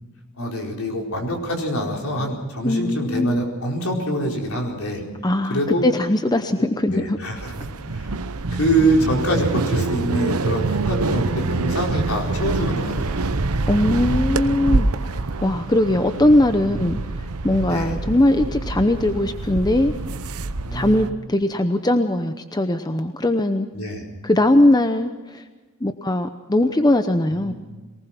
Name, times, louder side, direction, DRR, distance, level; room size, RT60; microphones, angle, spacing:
voice 1, 0.4-5.0 5.5-5.9 6.9-7.5 7.9-8.1 8.5-13.2 17.6-17.9 20.6-21.0 23.7-24.0 27.3-27.5, right 1 dB, 65° left, 0 dB, 4.7 m, -25 dB
voice 2, 2.6-3.3 5.2-7.2 13.7-17.0 17.4-19.9 20.7-23.7 24.2-25.4 25.8-27.5, left 1 dB, 20° left, 8 dB, 0.8 m, -20 dB
sound 1, 7.4-21.1, right 3 dB, 75° right, 0.9 m, -25 dB
23.0 x 19.5 x 5.9 m, 1.2 s
head